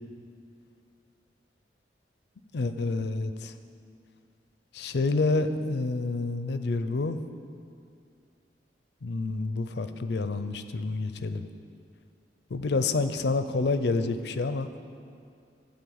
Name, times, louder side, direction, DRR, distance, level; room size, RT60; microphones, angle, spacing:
voice 1, 2.5-3.5 4.7-7.2 9.0-11.4 12.5-14.7, left 3 dB, 65° left, 10 dB, 0.5 m, -28 dB
11.5 x 4.2 x 7.8 m, 2.4 s
head